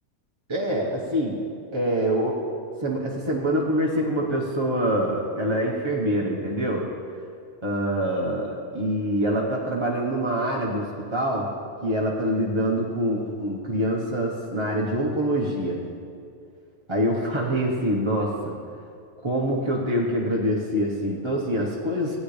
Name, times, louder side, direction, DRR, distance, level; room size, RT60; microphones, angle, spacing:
voice 1, 0.5-1.4 1.7-2.5 2.8-6.9 7.6-11.5 11.8-15.9 16.9-18.5 19.2-22.2, equal, 20° right, -4 dB, 1.1 m, -25 dB
17.5 x 9.7 x 3.3 m, 2.4 s
omnidirectional pair, 1.6 m